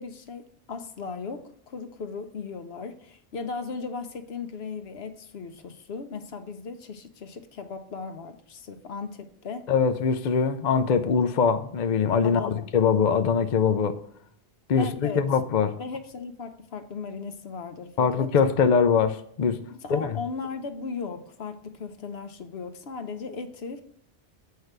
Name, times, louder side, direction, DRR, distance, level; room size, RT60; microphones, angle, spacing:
voice 1, 0.0-9.7 12.2-12.7 14.7-15.2 15.8-18.3 19.7-23.8, left 4 dB, 75° left, 8 dB, 1.1 m, -37 dB
voice 2, 9.7-14.0 14.7-15.7 18.0-19.6 19.9-20.2, left 6 dB, 50° left, 8 dB, 0.7 m, -22 dB
8.2 x 4.7 x 6.6 m, 0.63 s
omnidirectional pair, 1.0 m